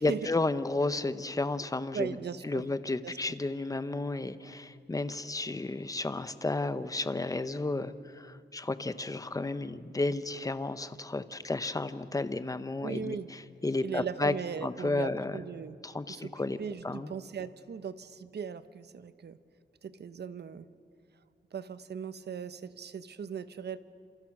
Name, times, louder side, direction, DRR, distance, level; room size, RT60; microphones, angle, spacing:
voice 1, 0.0-2.2 2.4-14.3 14.6-15.4 15.8-16.6 16.8-17.1, left 2 dB, 20° left, 12 dB, 1.0 m, -32 dB
voice 2, 1.9-2.6 3.0-3.2 12.8-13.3 13.8-15.8 16.1-16.3 16.6-19.4 19.8-20.7 21.5-23.8, right 7 dB, 65° right, 13 dB, 1.1 m, -38 dB
29.0 x 27.5 x 6.1 m, 2.6 s
wide cardioid pair, 130°, 18 cm